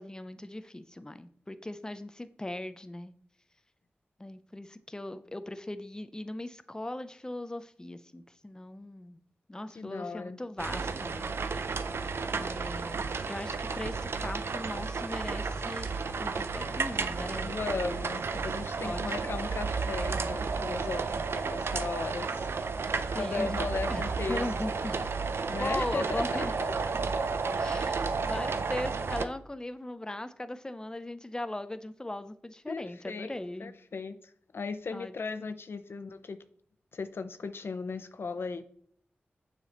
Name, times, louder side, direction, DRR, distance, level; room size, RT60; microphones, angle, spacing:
voice 1, 0.0-3.1 4.2-9.2 9.5-11.8 12.4-15.9 16.2-17.5 18.8-19.0 22.9-23.6 23.9-25.1 25.6-26.5 27.5-33.7 34.9-35.1, left 1 dB, 15° left, 11 dB, 0.5 m, -39 dB
voice 2, 9.8-10.4 17.4-22.5 23.1-24.4 25.5-26.7 32.7-36.4 36.9-38.7, left 4 dB, 70° left, 11 dB, 0.4 m, -37 dB
sound 1, 10.6-29.3, right 4 dB, 75° right, 0.4 m, -32 dB
sound 2, 15.1-25.7, right 4 dB, 40° right, 1.1 m, -50 dB
6.7 x 5.9 x 2.9 m, 0.63 s
cardioid pair, 55°, 4 cm